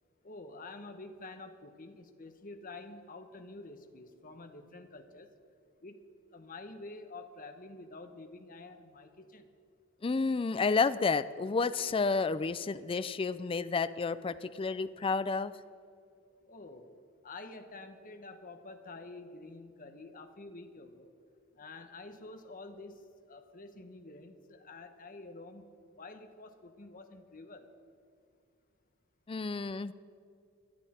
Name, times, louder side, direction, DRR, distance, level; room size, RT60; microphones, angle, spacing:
voice 1, 0.2-5.3 5.8-6.0 6.3-9.5 16.5-21.1 21.5-25.7 26.0-27.7, left 2 dB, 40° left, 7 dB, 1.1 m, -48 dB
voice 2, 10.0-15.5 29.3-29.9, left 4 dB, 25° left, 14 dB, 0.4 m, -30 dB
19.0 x 12.0 x 4.3 m, 2.6 s
head